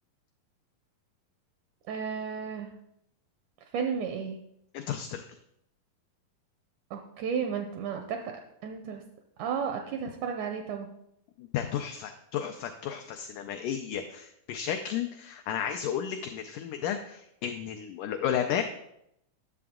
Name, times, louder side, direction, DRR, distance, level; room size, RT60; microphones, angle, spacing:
voice 1, 1.9-2.7 3.7-4.4 6.9-8.3 8.6-9.0 9.4-10.9, right 6 dB, 80° right, 5 dB, 1.7 m, -33 dB
voice 2, 4.7-5.2 11.4-18.6, left 9 dB, 90° left, 5 dB, 1.8 m, -33 dB
11.0 x 6.9 x 3.6 m, 0.78 s
omnidirectional pair, 4.3 m